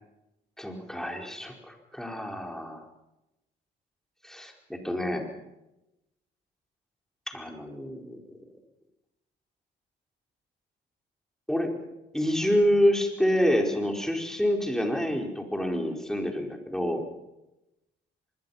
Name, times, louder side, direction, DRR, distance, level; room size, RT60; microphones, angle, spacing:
voice 1, 0.6-2.8 4.2-5.2 7.3-8.2 11.5-11.7 12.1-17.0, equal, ahead, 2 dB, 4.8 m, -27 dB
24.5 x 22.0 x 5.8 m, 0.94 s
cardioid pair, 90°, 20 cm